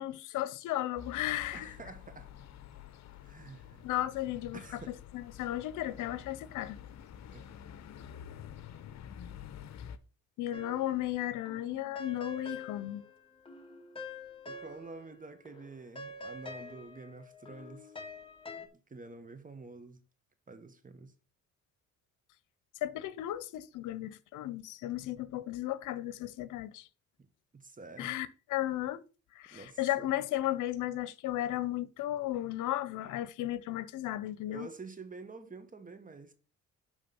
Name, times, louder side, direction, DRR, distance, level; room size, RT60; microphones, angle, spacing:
voice 1, 0.0-1.7 3.8-4.6 4.9-6.8 10.4-13.0 22.8-26.9 28.0-29.0 29.3-34.7, left 14 dB, 90° left, 0.7 m, -35 dB
sound 1, 1.0-10.0, left 9 dB, 65° left, 0.9 m, -49 dB
voice 2, 1.5-2.3 3.2-3.9 4.5-5.0 7.3-7.7 14.4-17.9 18.6-20.0 20.5-21.1 27.5-28.2 29.5-30.1 34.5-36.3, right 3 dB, 25° right, 1.5 m, -48 dB
sound 2, 10.5-11.2 11.4-15.2 15.4-18.7, left 2 dB, 20° left, 1.7 m, -46 dB
11.0 x 3.6 x 5.9 m
cardioid pair, 90°, 30 cm